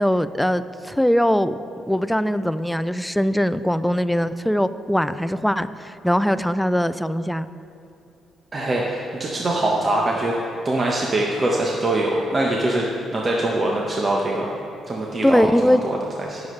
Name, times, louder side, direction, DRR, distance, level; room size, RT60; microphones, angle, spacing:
voice 1, 0.0-1.5 1.9-7.5 15.2-15.8, equal, 5° left, 13 dB, 0.4 m, -21 dB
voice 2, 8.5-10.3 10.6-14.5 14.9-16.4, right 1 dB, 35° right, -2 dB, 1.1 m, -23 dB
18.5 x 7.2 x 3.3 m, 2.6 s
cardioid pair, 90°, 0 cm